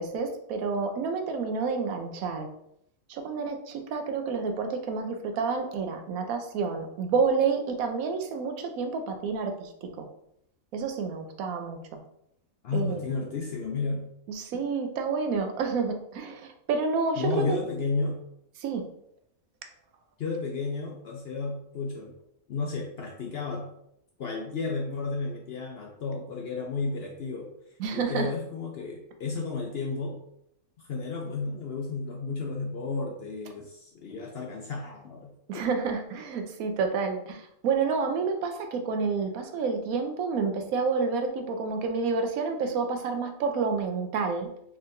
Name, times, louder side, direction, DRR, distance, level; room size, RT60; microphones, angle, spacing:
voice 1, 0.0-2.5 3.1-10.1 10.7-12.0 12.7-13.0 14.3-17.6 18.6-18.8 27.8-28.3 35.5-44.5, right 5 dB, 80° right, 5 dB, 1.0 m, -29 dB
voice 2, 12.6-14.1 17.2-18.2 20.2-22.1 22.5-23.7 24.2-27.5 27.9-30.2 30.8-35.6, left 4 dB, 65° left, 1 dB, 0.6 m, -32 dB
4.3 x 3.4 x 2.5 m, 0.76 s
omnidirectional pair, 1.5 m